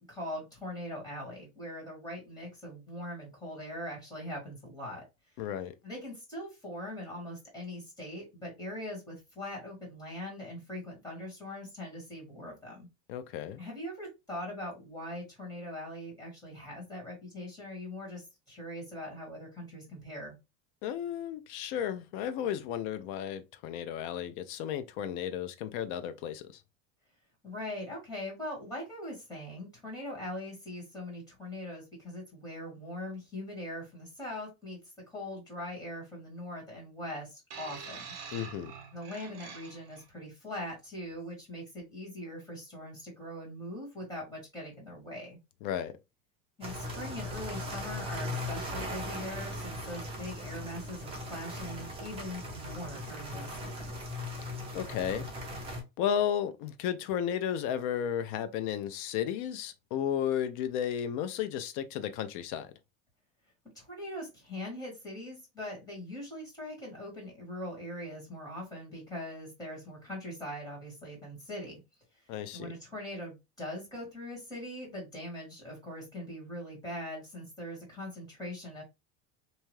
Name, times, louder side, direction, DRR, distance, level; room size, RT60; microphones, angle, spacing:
voice 1, 0.1-5.0 5.8-12.9 13.6-20.4 27.4-34.8 35.1-38.1 38.9-45.4 46.6-54.0 63.7-71.8 72.5-78.8, left 1 dB, 10° left, 1.4 m, -41 dB
voice 2, 5.4-5.7 13.1-13.6 20.8-26.6 38.3-38.7 45.6-45.9 54.7-55.3 56.0-62.7 72.3-72.7, left 9 dB, 55° left, 0.4 m, -33 dB
sound 1, 37.5-40.1 41.0-41.1, right 6 dB, 55° right, 0.9 m, -46 dB
sound 2, 46.6-55.8, left 1 dB, 15° right, 0.7 m, -39 dB
2.8 x 2.3 x 3.0 m
cardioid pair, 165°, 32 cm